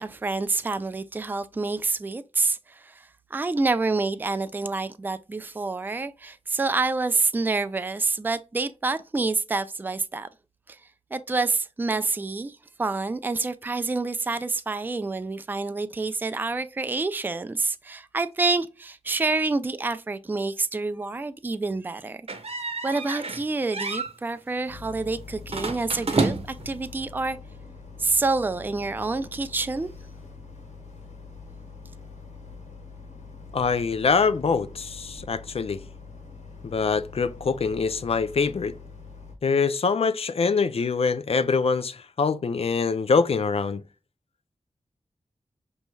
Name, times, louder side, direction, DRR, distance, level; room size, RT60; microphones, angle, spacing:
voice 1, 0.0-10.3 10.7-10.8 11.1-22.2 22.8-27.4 28.0-29.9, right 3 dB, 15° right, 0.3 m, -27 dB
sound 1, 22.3-23.4 23.7-24.1 25.5-26.7, right 3 dB, 55° right, 0.8 m, -29 dB
Boat Water vehicle, 24.7-39.3, left 4 dB, 90° left, 1.3 m, -44 dB
voice 2, 33.5-35.8 36.6-38.7 39.4-43.8, left 5 dB, 55° left, 0.4 m, -24 dB
5.3 x 3.1 x 2.2 m
wide cardioid pair, 90°, 12 cm